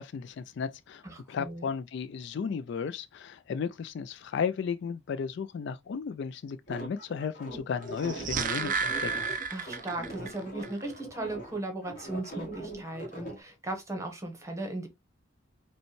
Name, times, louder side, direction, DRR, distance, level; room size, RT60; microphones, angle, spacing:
voice 1, 0.0-9.3, left 6 dB, 55° left, 0.3 m, -34 dB
voice 2, 1.0-1.7 9.5-14.9, right 2 dB, 15° right, 0.9 m, -37 dB
sound 1, 6.7-13.4, right 1 dB, 40° left, 1.4 m, -42 dB
sound 2, 7.9-10.3 10.6-10.7, right 5 dB, 40° right, 0.4 m, -32 dB
5.2 x 2.2 x 3.0 m
head